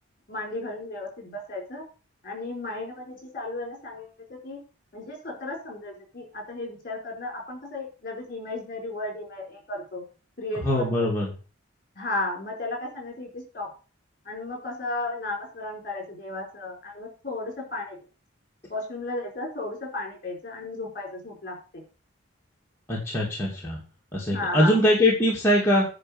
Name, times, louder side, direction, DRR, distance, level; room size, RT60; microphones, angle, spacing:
voice 1, 0.3-1.8 2.2-4.6 4.9-10.0 10.4-11.1 11.9-13.7 14.2-18.0 18.7-21.8 24.3-24.8, left 2 dB, 40° left, 2 dB, 4.7 m, -34 dB
voice 2, 10.5-11.3 22.9-23.8 24.1-25.8, left 1 dB, 10° left, -4 dB, 2.6 m, -22 dB
10.0 x 5.0 x 7.9 m, 0.35 s
head